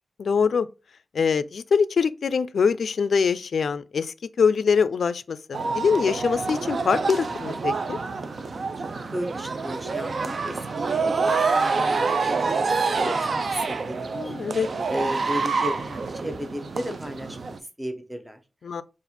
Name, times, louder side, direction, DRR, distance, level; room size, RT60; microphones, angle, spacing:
voice 1, 0.2-0.7 1.1-8.0 14.1-14.7 18.6-18.8, left 6 dB, 85° left, 0.3 m, -23 dB
sound 1, 5.5-17.6, right 4 dB, 55° right, 0.4 m, -27 dB
voice 2, 8.9-10.6 10.9-14.3 14.9-17.5 17.8-18.4, equal, 10° right, 0.6 m, -34 dB
4.2 x 2.4 x 4.1 m
wide cardioid pair, 170°, 0 cm